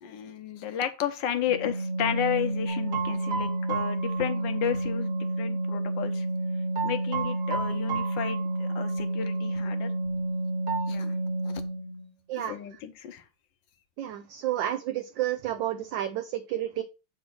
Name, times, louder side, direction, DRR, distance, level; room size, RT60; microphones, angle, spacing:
voice 1, 0.0-6.3 6.8-9.9 10.9-11.2 11.4-11.6 12.4-13.2, left 9 dB, 65° left, 8 dB, 1.4 m, -32 dB
Organ, 1.5-12.1, right 1 dB, 35° right, 0.8 m, -30 dB
sad song, 2.7-5.3 6.8-9.0 9.3-9.5 10.7-10.9, right 6 dB, 55° right, 1.6 m, -35 dB
voice 2, 14.0-16.8, right 13 dB, 70° right, 8 dB, 1.2 m, -30 dB
7.4 x 3.0 x 5.9 m, 0.30 s
omnidirectional pair, 2.3 m